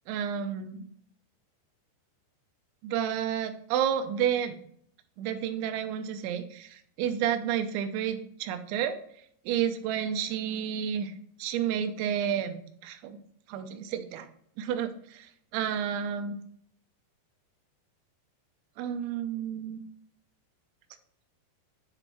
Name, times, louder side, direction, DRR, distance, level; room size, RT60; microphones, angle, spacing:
voice 1, 0.1-0.8 2.8-4.6 5.2-9.0 9.5-11.1 11.4-13.2 13.5-14.3 14.6-16.4 18.8-19.8, right 9 dB, 85° right, 8 dB, 2.9 m, -31 dB
7.7 x 4.4 x 3.0 m, 0.64 s
omnidirectional pair, 5.3 m